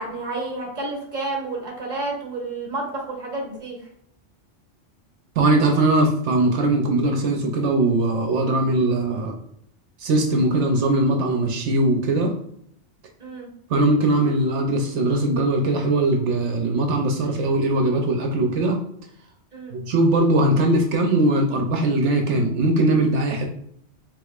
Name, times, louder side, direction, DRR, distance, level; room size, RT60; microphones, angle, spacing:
voice 1, 0.0-3.8 13.2-13.5 19.5-19.8, right 2 dB, 40° right, 0 dB, 1.2 m, -30 dB
voice 2, 5.4-9.4 10.0-12.3 13.7-18.8 19.7-23.5, right 2 dB, 70° right, 3 dB, 0.9 m, -20 dB
4.9 x 3.6 x 2.4 m, 0.68 s
omnidirectional pair, 1.3 m